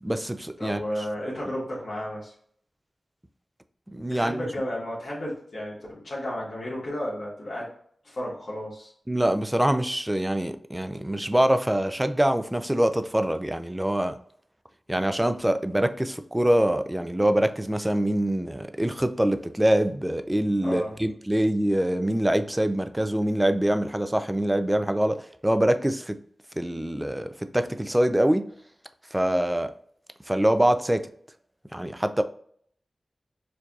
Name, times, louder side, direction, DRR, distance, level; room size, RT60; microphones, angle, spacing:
voice 1, 0.0-0.8 3.9-4.4 9.1-14.2 14.9-26.2 26.6-28.5 29.1-29.7 30.3-31.1 31.7-32.2, right 1 dB, 15° right, 0.4 m, -24 dB
voice 2, 0.6-2.3 4.1-7.7 8.0-8.9 20.6-21.0, equal, 70° left, 1.2 m, -33 dB
4.5 x 2.7 x 2.3 m
cardioid pair, 50°, 0 cm